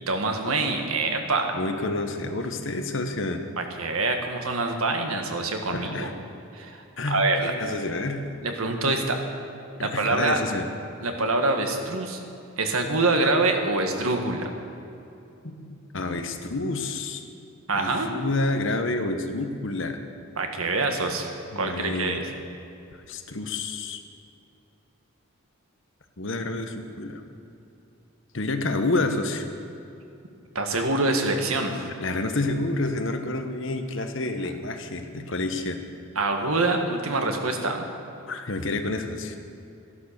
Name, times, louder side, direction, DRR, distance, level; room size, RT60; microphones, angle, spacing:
voice 1, 0.1-1.6 3.6-6.1 6.5-7.5 8.4-9.2 9.8-10.4 11.0-12.2 12.6-14.5 17.7-18.1 20.4-21.3 21.5-22.2 30.5-31.9 36.1-37.8, right 2 dB, 80° right, 4 dB, 1.7 m, -25 dB
voice 2, 1.5-3.4 5.7-6.1 7.0-8.3 9.8-10.7 15.4-17.2 17.7-20.0 21.5-22.3 22.9-24.0 26.2-27.2 28.3-29.5 32.0-35.8 38.3-39.4, left 2 dB, 60° left, 7 dB, 1.1 m, -29 dB
14.0 x 11.0 x 6.7 m, 2.7 s
head